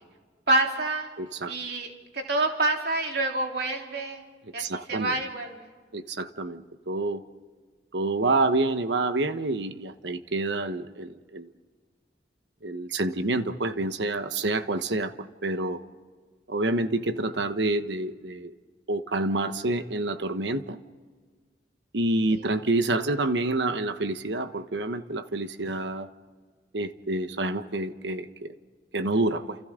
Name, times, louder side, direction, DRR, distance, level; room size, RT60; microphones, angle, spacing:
voice 1, 0.5-1.1 1.5-4.2 4.5-5.7, right 2 dB, 65° right, 1 dB, 3.5 m, -27 dB
voice 2, 1.2-1.5 4.6-5.2 5.9-7.2 7.9-11.5 12.6-15.8 16.5-18.5 18.9-20.8 21.9-26.1 26.7-28.5 28.9-29.6, right 2 dB, 85° right, 10 dB, 1.2 m, -28 dB
30.0 x 29.0 x 3.8 m, 1.5 s
head